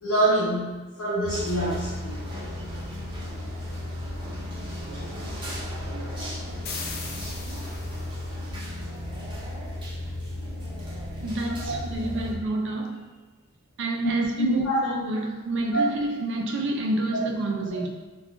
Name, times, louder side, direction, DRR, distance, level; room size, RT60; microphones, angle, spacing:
voice 1, 0.0-2.2 11.6-11.8 14.0-14.1 14.4-14.8 15.7-15.9, right 1 dB, 80° left, -10 dB, 0.7 m, -25 dB
sound 1, 1.2-12.3, left 1 dB, 20° right, 0.7 m, -34 dB
sound 2, 6.6-8.2, left 5 dB, 45° left, 0.3 m, -38 dB
voice 2, 11.2-13.0 13.8-17.9, right 2 dB, 55° right, 1 dB, 0.4 m, -28 dB
3.6 x 2.3 x 2.3 m, 1.2 s
head